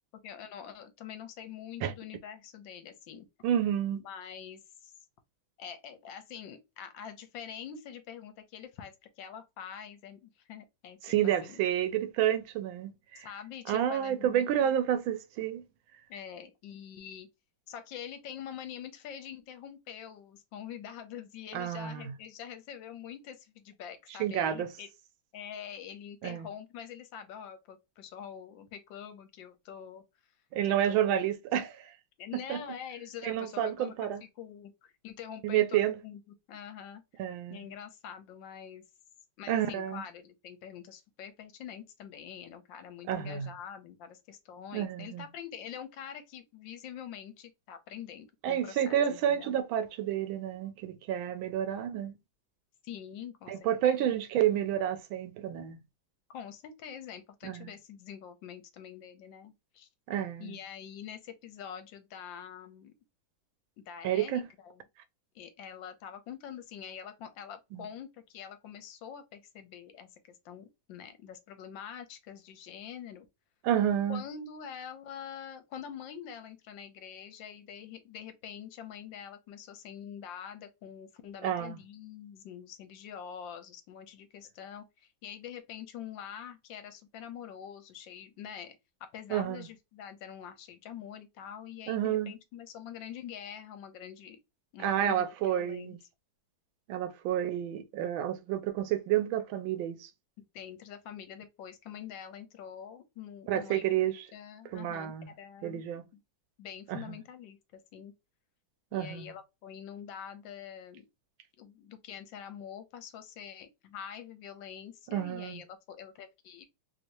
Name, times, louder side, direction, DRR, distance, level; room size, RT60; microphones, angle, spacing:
voice 1, 0.2-3.3 3.9-4.9 5.6-11.6 13.1-14.7 16.1-17.3 17.7-24.9 25.3-30.0 30.7-31.3 32.2-34.1 34.4-36.2 36.5-37.0 37.5-38.8 39.4-49.6 52.8-54.2 56.3-59.9 60.4-62.9 63.8-64.8 65.3-73.3 74.1-94.4 94.7-96.0 100.4-105.8 106.1-106.2 106.6-108.1 108.9-111.0 111.6-116.7, left 8 dB, 75° left, 1.4 m, -45 dB
voice 2, 3.4-4.0 11.0-13.3 13.7-15.6 21.5-22.1 24.2-24.7 26.2-26.5 30.5-31.9 32.3-32.6 33.2-34.2 35.4-36.0 37.2-37.7 39.5-40.0 43.1-43.5 44.7-45.2 48.4-52.2 53.5-55.8 57.4-57.7 60.1-60.6 64.0-64.5 67.7-67.9 73.6-74.2 81.4-81.8 89.3-89.7 91.9-92.3 94.8-96.0 96.9-100.1 103.5-104.2 104.7-105.3 105.6-106.0 106.9-107.0 108.9-109.3 115.1-115.6, right 10 dB, 85° right, 1.4 m, -30 dB
3.4 x 2.9 x 2.5 m
omnidirectional pair, 2.1 m